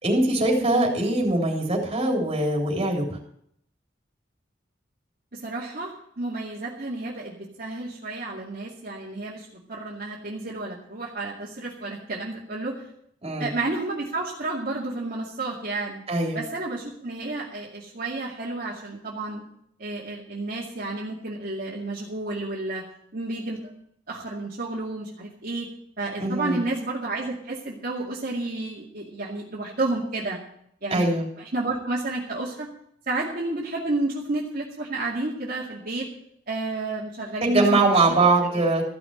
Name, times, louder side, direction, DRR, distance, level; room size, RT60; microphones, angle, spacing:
voice 1, 0.0-3.2 13.2-13.5 16.1-16.4 26.2-26.6 30.9-31.3 37.4-38.8, right 2 dB, 35° right, -2 dB, 3.4 m, -22 dB
voice 2, 5.3-12.9 13.4-16.0 16.3-19.4 19.8-22.8 23.1-23.7 24.1-25.7 26.0-30.4 30.8-31.1 31.4-32.7 33.1-36.1 36.5-37.8 38.5-38.6, right 2 dB, 55° right, -5 dB, 2.2 m, -31 dB
14.5 x 6.2 x 8.9 m, 0.70 s
head